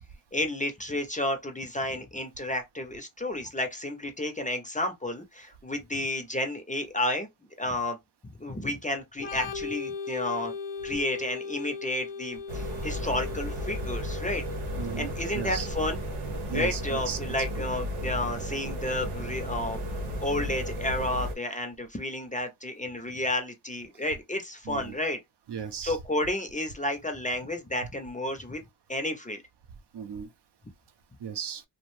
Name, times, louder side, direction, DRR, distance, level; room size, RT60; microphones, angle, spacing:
voice 1, 0.3-7.3 7.6-8.0 8.4-10.5 10.8-14.4 15.0-16.0 16.5-19.8 20.2-25.2 25.8-28.6 28.9-29.4, left 1 dB, 15° left, 0.5 m, -31 dB
Organ, 9.2-16.7, left 5 dB, 90° left, 0.6 m, -39 dB
sound 1, 12.5-21.3, equal, 85° right, 0.8 m, -34 dB
voice 2, 14.8-15.7 16.5-17.2 24.7-25.0 25.5-26.0 29.9-30.3 31.2-31.6, right 7 dB, 55° right, 0.5 m, -35 dB
2.4 x 2.1 x 3.0 m
cardioid pair, 75°, 50 cm